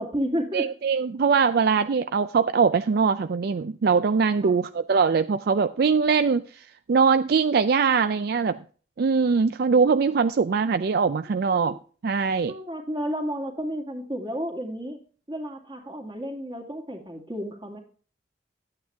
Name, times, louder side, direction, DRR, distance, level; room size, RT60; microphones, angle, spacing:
voice 1, 0.0-0.7 4.4-4.6 11.5-11.8 12.5-15.0 15.3-17.8, equal, 25° right, 2 dB, 2.2 m, -32 dB
voice 2, 0.5-8.6 9.0-11.8 12.0-12.5, right 5 dB, 55° right, 11 dB, 0.4 m, -22 dB
11.0 x 8.9 x 3.4 m, 0.40 s
head